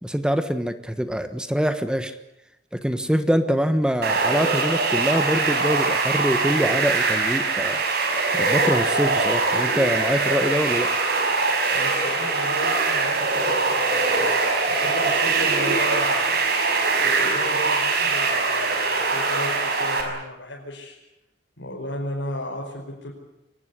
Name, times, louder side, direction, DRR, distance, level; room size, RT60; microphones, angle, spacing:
voice 1, 0.0-2.1 2.7-7.8 8.3-10.9, equal, 5° right, 9 dB, 1.3 m, -24 dB
sound 1, 4.0-20.0, right 3 dB, 60° right, 5.5 m, -22 dB
voice 2, 11.7-14.2 14.7-16.4 17.0-21.0 21.6-23.1, equal, 85° left, -3 dB, 5.2 m, -34 dB
23.5 x 18.5 x 9.8 m, 0.90 s
head